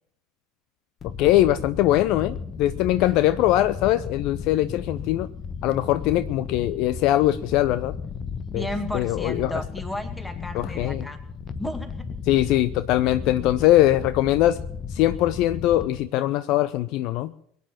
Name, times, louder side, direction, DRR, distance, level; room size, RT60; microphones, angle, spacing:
sound 1, 1.0-16.1, left 6 dB, 30° left, 1.2 m, -35 dB
voice 1, 1.2-5.3 5.6-7.9 8.5-8.7 8.9-9.6 10.5-11.1 12.3-14.6 14.9-17.3, left 14 dB, 50° left, 15 dB, 0.5 m, -21 dB
voice 2, 8.5-11.2 11.6-12.1, equal, 5° left, 8 dB, 2.2 m, -33 dB
22.5 x 9.4 x 5.9 m, 0.65 s
figure-of-eight pair, 70°, 0 cm